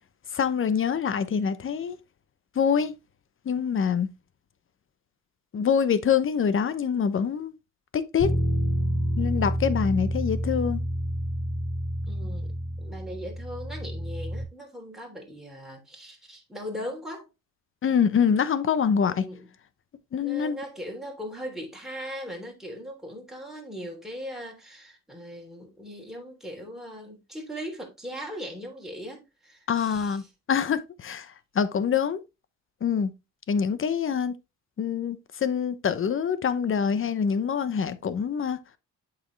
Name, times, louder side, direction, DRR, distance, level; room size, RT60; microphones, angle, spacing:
voice 1, 0.3-2.0 2.6-2.9 3.5-4.1 5.5-7.5 7.9-8.3 9.2-10.8 17.8-19.2 20.1-20.6 29.7-30.2 30.5-31.3 31.5-32.2 32.8-33.1 33.5-34.3 34.8-38.6, left 7 dB, 45° left, 0.9 m, -25 dB
Bass guitar, 8.2-14.4, equal, 75° left, 3.6 m, -29 dB
voice 2, 12.1-12.5 12.8-17.3 19.1-19.5 20.2-30.3, equal, ahead, 3.3 m, -39 dB
7.9 x 5.7 x 3.2 m
cardioid pair, 90°, 30 cm